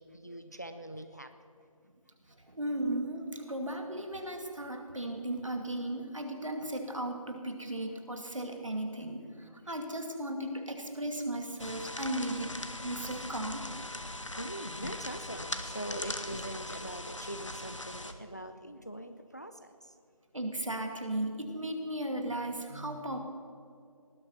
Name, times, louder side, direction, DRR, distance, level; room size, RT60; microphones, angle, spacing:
voice 1, 0.0-1.3 14.4-19.7, right 1 dB, 30° left, 9 dB, 0.6 m, -42 dB
voice 2, 2.3-12.5 12.8-13.7 20.3-23.2, right 1 dB, 60° right, 4 dB, 2.4 m, -36 dB
sound 1, 11.6-18.1, left 1 dB, 55° left, 1.3 m, -40 dB
19.0 x 12.0 x 5.9 m, 2.3 s
figure-of-eight pair, 170°, 19 cm